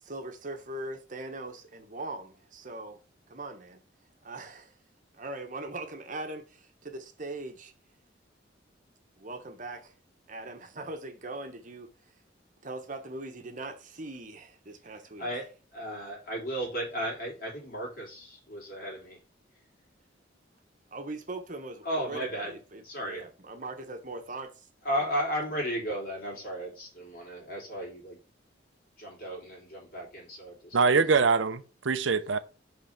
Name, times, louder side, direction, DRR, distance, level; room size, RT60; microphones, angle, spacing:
voice 1, 0.0-3.0 3.3-3.8 4.2-4.8 5.1-7.7 9.2-9.9 10.3-12.2 12.6-15.3 20.9-24.7, right 2 dB, 45° right, 1.0 m, -40 dB
voice 2, 15.7-19.2 21.8-22.5 22.8-23.2 24.8-28.2 29.0-31.0, equal, 50° left, 3.2 m, -34 dB
voice 3, 30.7-32.4, right 4 dB, 90° right, 0.6 m, -24 dB
5.5 x 3.7 x 5.7 m
head